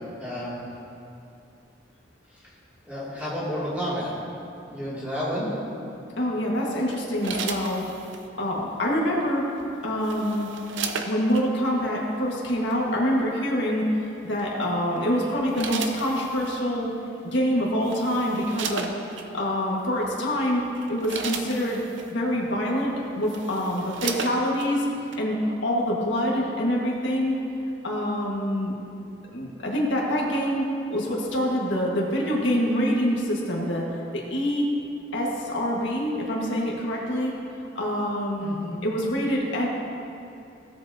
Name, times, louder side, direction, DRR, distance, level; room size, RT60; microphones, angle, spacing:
voice 1, 0.2-0.6 2.9-4.1 4.7-5.5 38.4-38.7, equal, 10° right, -9 dB, 2.6 m, -30 dB
voice 2, 6.2-7.9 8.4-9.5 9.8-10.5 11.1-16.9 17.3-18.9 19.3-20.6 20.9-21.8 22.1-24.9 25.2-27.4 27.8-28.7 29.3-33.9 34.1-34.7 35.1-37.3 37.7-38.5 38.8-39.7, equal, 70° left, -3 dB, 1.6 m, -25 dB
sound 1, 6.9-8.3 9.6-11.5 12.5-12.7 14.4-14.7 15.2-16.6 17.4-17.5 17.8-19.3 20.0-20.2 20.6-22.1 22.8-22.9 23.2-24.7 25.1-25.2, right 5 dB, 70° right, 0.7 m, -35 dB
17.0 x 7.8 x 2.8 m, 2.7 s
head